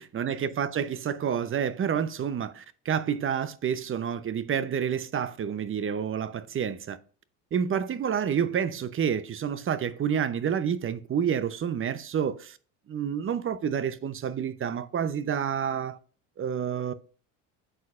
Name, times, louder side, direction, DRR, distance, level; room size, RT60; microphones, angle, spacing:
voice 1, 0.0-7.0 7.5-12.6 12.9-16.0 16.4-16.9, right 8 dB, 35° right, 0.7 m, -29 dB
9.0 x 6.4 x 2.5 m
supercardioid pair, 100°, 38 cm